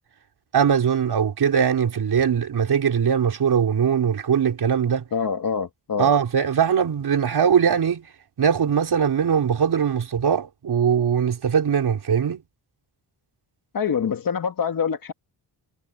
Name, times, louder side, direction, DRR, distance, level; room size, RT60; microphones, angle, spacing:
voice 1, 0.5-5.0 6.0-8.1 8.4-12.4, right 7 dB, 60° right, 4.4 m, -21 dB
voice 2, 5.1-6.1 13.7-15.1, left 6 dB, 50° left, 2.0 m, -25 dB
wide cardioid pair, 170°, 44 cm